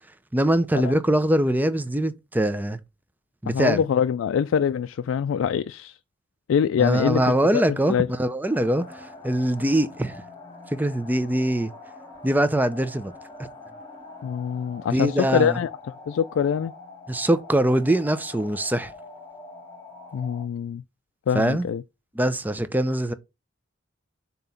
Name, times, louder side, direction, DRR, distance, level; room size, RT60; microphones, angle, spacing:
voice 1, 0.3-2.8 3.4-3.8 6.8-8.9 9.2-10.2 10.7-11.7 12.2-13.1 14.9-15.6 17.1-18.9 21.3-21.6 22.2-23.1, right 1 dB, 10° right, 0.5 m, -23 dB
voice 2, 3.5-6.0 6.5-7.2 7.5-7.6 7.9-8.1 14.2-15.8 16.1-16.7 20.1-20.8 21.3-21.8, left 7 dB, 90° left, 0.3 m, -24 dB
sound 1, 8.4-20.4, left 3 dB, 15° left, 2.9 m, -44 dB
7.3 x 3.0 x 5.6 m
head